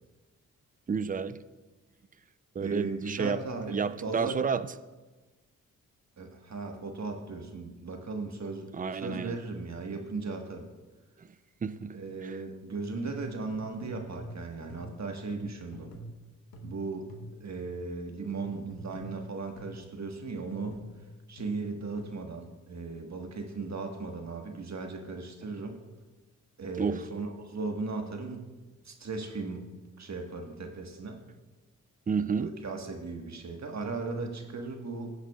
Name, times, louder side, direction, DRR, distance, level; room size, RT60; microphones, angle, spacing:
voice 1, 0.9-1.4 2.5-3.4 3.7-4.7 8.7-9.3 11.2-11.3 11.6-12.0 12.2-12.4 26.8-27.0 32.1-32.5, right 6 dB, 25° right, 15 dB, 0.5 m, -30 dB
voice 2, 2.6-3.7 4.0-4.4 6.2-10.7 11.9-15.9 16.6-17.1 17.4-20.8 21.3-25.8 26.6-28.4 28.8-29.6 30.0-31.2 32.4-35.1, right 3 dB, 50° right, 3 dB, 1.5 m, -37 dB
sound 1, 13.5-17.6 18.3-19.9 20.5-22.0, equal, 70° left, 1.2 m, -46 dB
15.5 x 8.1 x 2.4 m, 1.2 s
supercardioid pair, 40°, 36 cm